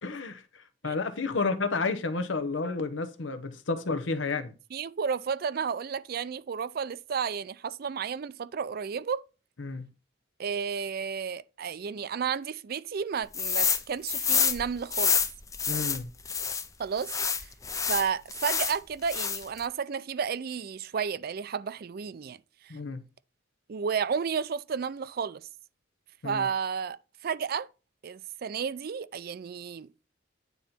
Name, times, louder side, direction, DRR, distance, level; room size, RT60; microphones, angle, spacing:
voice 1, 0.0-4.5 9.6-9.9 15.7-16.1 22.7-23.0 26.2-26.5, left 4 dB, 80° left, 0.9 m, -31 dB
voice 2, 4.7-9.2 10.4-15.2 16.8-17.1 17.4-17.5 17.9-22.4 22.6-22.8 23.7-25.5 26.2-27.0 27.2-27.7 28.0-29.9, right 6 dB, 50° right, 0.4 m, -32 dB
sound 1, 13.3-13.8 14.1-16.6 17.0-18.8 19.1-19.6, left 6 dB, 15° left, 0.5 m, -27 dB
9.4 x 4.0 x 4.3 m
head